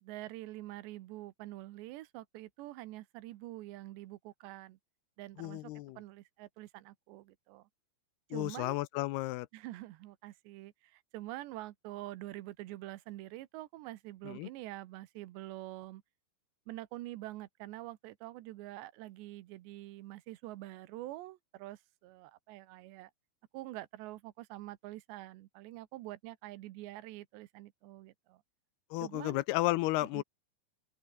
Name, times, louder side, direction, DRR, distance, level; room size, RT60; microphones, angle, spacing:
voice 1, 0.0-4.8 5.2-7.7 8.3-8.8 9.5-16.0 16.7-23.1 23.5-28.4 29.0-29.4 30.1-30.2, right 17 dB, 75° right, 3.0 m, -46 dB
voice 2, 5.4-6.0 8.3-9.5 14.3-14.5 28.9-30.2, left 19 dB, 85° left, 2.2 m, -33 dB
open air
omnidirectional pair, 5.5 m